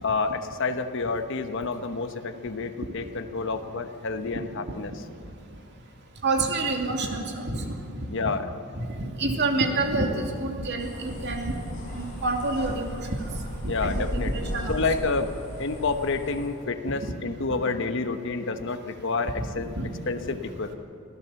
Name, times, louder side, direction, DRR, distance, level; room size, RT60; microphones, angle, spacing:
voice 1, 0.0-5.0 8.1-8.5 13.7-15.3 15.6-19.7 20.1-20.7, left 3 dB, 60° left, 7 dB, 1.1 m, -29 dB
voice 2, 6.2-7.7 8.8-11.5 11.9-13.2 13.8-14.7 19.7-19.9, right 2 dB, 50° right, 2 dB, 2.5 m, -28 dB
sound 1, 10.8-16.5, equal, 35° left, 5.2 m, -36 dB
24.5 x 15.5 x 7.1 m, 2.7 s
head